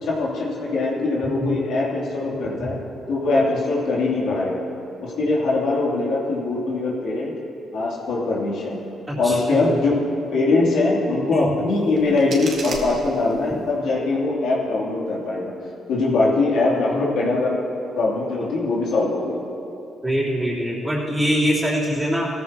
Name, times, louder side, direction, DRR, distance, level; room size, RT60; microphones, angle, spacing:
voice 1, 0.0-2.8 3.1-4.6 5.0-7.3 7.7-8.8 9.2-10.0 10.3-15.5 15.9-17.6 18.0-19.4, left 3 dB, 80° left, -5 dB, 3.0 m, -22 dB
voice 2, 1.2-1.6 2.6-2.7 9.1-9.8 11.3-11.5 20.0-22.3, equal, 10° right, -6 dB, 3.5 m, -24 dB
sound 1, 11.7-13.7, right 3 dB, 60° right, 1.9 m, -36 dB
17.5 x 14.5 x 2.9 m, 2.8 s
cardioid pair, 90°, 0 cm